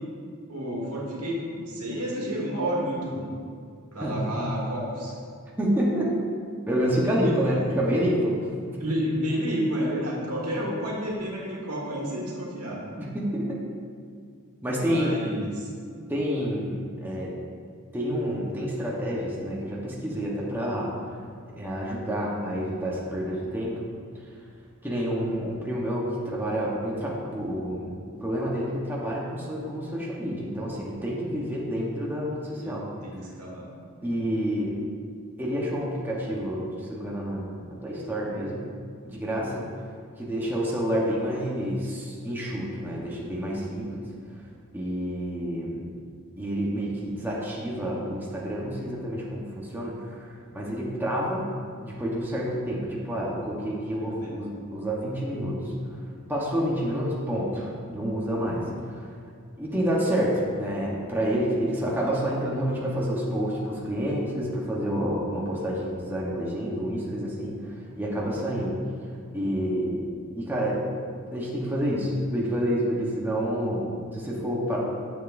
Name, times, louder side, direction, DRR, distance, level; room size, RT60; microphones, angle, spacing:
voice 1, 0.5-3.3 3.9-5.1 7.2-7.4 7.7-7.8 8.8-12.8 14.8-15.7 32.6-33.7 34.0-34.2 54.0-54.4, equal, 80° right, -4 dB, 1.8 m, -30 dB
voice 2, 4.0-4.3 5.6-6.2 6.7-8.4 8.6-8.8 13.0-13.6 14.6-15.1 16.1-17.3 17.9-20.9 21.6-23.8 24.8-27.9 28.2-32.8 34.0-34.7 35.4-38.6 39.0-39.6 40.2-44.0 44.7-45.9 46.4-51.5 51.8-55.6 56.3-58.6 58.9-59.1 59.6-68.8 69.3-70.1 70.3-70.8 71.3-74.8, equal, 10° right, -5 dB, 1.0 m, -28 dB
10.0 x 7.0 x 2.6 m, 2.3 s
head